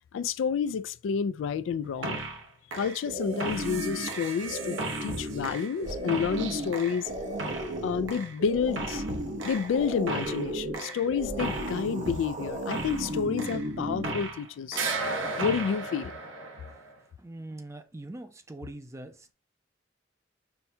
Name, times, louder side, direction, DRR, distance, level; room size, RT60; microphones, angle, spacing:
voice 1, 0.1-2.2 2.7-7.1 7.8-9.0 9.4-14.8 15.4-16.1, left 6 dB, 80° left, 0.3 m, -30 dB
sound 1, 2.0-2.4 2.7-14.5 14.7-16.9, right 2 dB, 85° right, 0.9 m, -34 dB
sound 2, 5.8-8.1 8.4-10.6 11.1-13.4, right 1 dB, 45° right, 0.7 m, -43 dB
voice 2, 17.2-19.3, right 1 dB, 15° right, 0.4 m, -42 dB
5.6 x 2.2 x 2.7 m
head